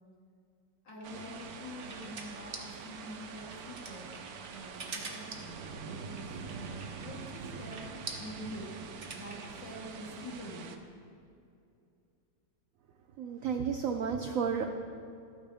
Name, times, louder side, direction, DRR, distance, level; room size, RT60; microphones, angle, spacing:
voice 1, 0.8-4.2 4.4-7.8 8.2-8.7 9.1-10.8, equal, 75° left, -5 dB, 3.0 m, -46 dB
sound 1, 0.9-9.6, right 4 dB, 40° right, 0.9 m, -46 dB
sound 2, 1.0-10.8, right 5 dB, 65° right, 1.0 m, -45 dB
voice 2, 13.2-14.6, right 6 dB, 80° right, 5 dB, 0.7 m, -32 dB
13.0 x 9.2 x 3.4 m, 2.5 s
omnidirectional pair, 2.0 m